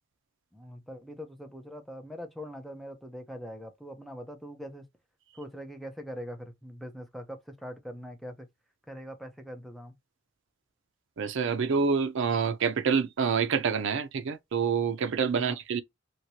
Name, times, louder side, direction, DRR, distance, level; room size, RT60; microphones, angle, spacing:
voice 1, 0.5-4.9 5.3-8.5 8.9-9.9 15.3-15.6, equal, ahead, 0.6 m, -42 dB
voice 2, 11.2-15.8, right 6 dB, 65° right, 0.5 m, -27 dB
3.1 x 2.8 x 2.7 m
head